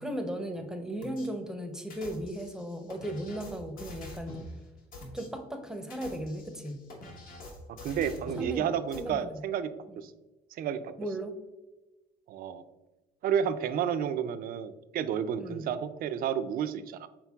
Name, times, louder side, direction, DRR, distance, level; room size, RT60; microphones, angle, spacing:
voice 1, 0.0-4.4 5.1-6.8 8.4-8.7 9.0-9.4 11.0-11.3 15.4-15.7, right 1 dB, 5° right, 5 dB, 0.6 m, -36 dB
sound 1, 1.0-1.3 1.9-4.5 4.9-5.3 5.8-8.5 8.9-9.0, left 2 dB, 55° left, 1.2 m, -45 dB
voice 2, 7.7-9.7 10.0-10.1 10.5-10.9 12.3-12.6 13.2-17.1, right 8 dB, 60° right, 11 dB, 0.4 m, -31 dB
5.8 x 3.8 x 2.3 m, 1.1 s
cardioid pair, 110°, 17 cm